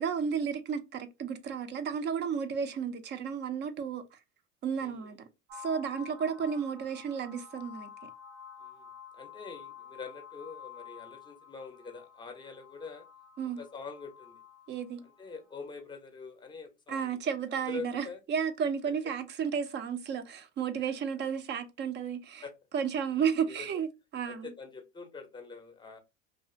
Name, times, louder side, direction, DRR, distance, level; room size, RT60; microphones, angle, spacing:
voice 1, 0.0-4.2 4.6-5.2 5.5-7.9 13.4-13.6 14.7-15.0 16.9-22.4 22.7-23.9 24.1-24.5, right 7 dB, 30° right, 0.4 m, -33 dB
voice 2, 4.8-5.1 8.6-13.1 13.6-14.4 15.0-18.2 22.4-22.5 23.5-23.7 24.3-26.0, left 4 dB, 10° left, 0.6 m, -45 dB
sound 1, 5.5-15.7, left 7 dB, 85° right, 0.9 m, -50 dB
2.7 x 2.4 x 2.4 m
hypercardioid pair, 90°, 37 cm